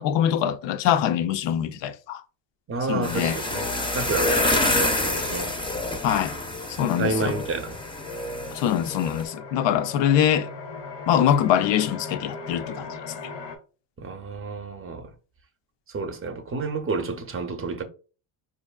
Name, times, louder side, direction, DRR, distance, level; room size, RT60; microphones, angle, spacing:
voice 1, 0.0-2.2 2.9-3.4 6.0-6.4 6.7-7.3 8.5-10.5 11.1-12.9, left 10 dB, 65° left, 0.5 m, -23 dB
voice 2, 2.7-5.5 7.0-7.8 14.0-15.1 15.9-17.8, right 4 dB, 30° right, 0.6 m, -30 dB
sound 1, 3.0-9.2, left 1 dB, 10° left, 0.5 m, -27 dB
sound 2, 5.1-13.6, left 4 dB, 85° left, 1.0 m, -40 dB
4.5 x 2.6 x 2.3 m
cardioid pair, 110°, 47 cm